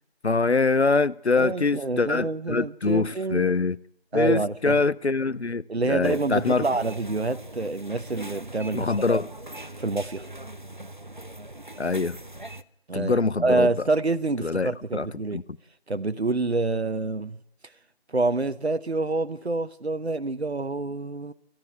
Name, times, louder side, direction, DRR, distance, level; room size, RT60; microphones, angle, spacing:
voice 1, 0.2-3.8 4.1-6.6 8.7-9.3 11.8-12.2 12.9-13.7 14.4-15.1 15.3-15.4, left 4 dB, 85° left, 0.8 m, -24 dB
voice 2, 1.4-3.5 4.1-4.8 5.7-9.2 9.8-10.3 12.9-15.4 15.9-17.4 18.1-21.3, right 3 dB, 80° right, 1.0 m, -27 dB
sound 1, 6.0-12.6, right 1 dB, 50° right, 0.8 m, -41 dB
28.5 x 10.5 x 9.2 m
figure-of-eight pair, 175°, 32 cm